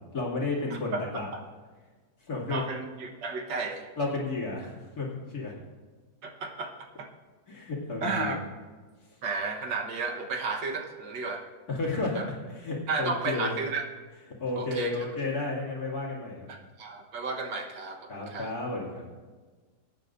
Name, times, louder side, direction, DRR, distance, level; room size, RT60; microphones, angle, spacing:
voice 1, 0.1-1.3 2.2-2.6 4.0-5.6 7.5-8.4 11.7-13.5 14.4-16.5 18.1-19.1, left 3 dB, 55° left, -3 dB, 2.9 m, -32 dB
voice 2, 2.5-3.9 6.2-6.7 7.0-7.1 8.0-8.4 9.2-11.5 12.2-12.3 12.9-13.8 14.6-15.0 16.8-18.5, right 4 dB, 85° right, 3 dB, 2.0 m, -33 dB
22.5 x 9.2 x 2.6 m, 1.4 s
omnidirectional pair, 1.9 m